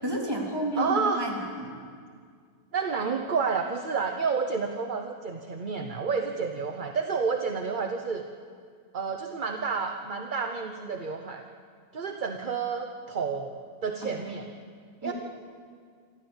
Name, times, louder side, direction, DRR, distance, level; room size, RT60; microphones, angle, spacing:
voice 1, 0.0-1.7 14.0-14.2 15.0-15.1, equal, 15° right, -2 dB, 3.5 m, -31 dB
voice 2, 0.8-1.3 2.7-8.2 8.9-11.4 11.9-13.6 13.8-14.5 15.0-15.1, right 5 dB, 40° right, 4 dB, 0.9 m, -30 dB
27.5 x 14.0 x 7.2 m, 2.1 s
omnidirectional pair, 1.6 m